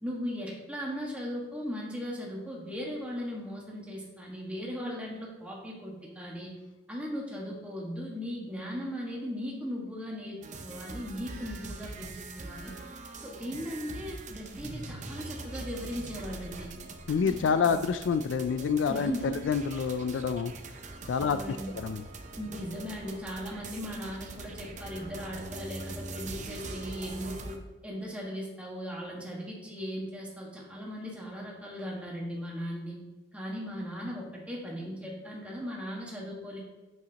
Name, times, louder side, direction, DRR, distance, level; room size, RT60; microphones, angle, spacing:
voice 1, 0.0-6.5 6.9-12.7 13.2-16.7 17.1-17.8 18.9-19.3 21.2-21.8 22.4-27.6 27.8-32.9 33.3-36.6, equal, 5° right, -4 dB, 1.6 m, -38 dB
sound 1, 10.4-27.6, right 3 dB, 40° right, 0.7 m, -43 dB
voice 2, 17.1-19.1 19.5-20.5 21.1-21.6 21.8-22.0, left 6 dB, 85° left, 11 dB, 0.3 m, -27 dB
8.7 x 7.7 x 2.9 m, 1.1 s
head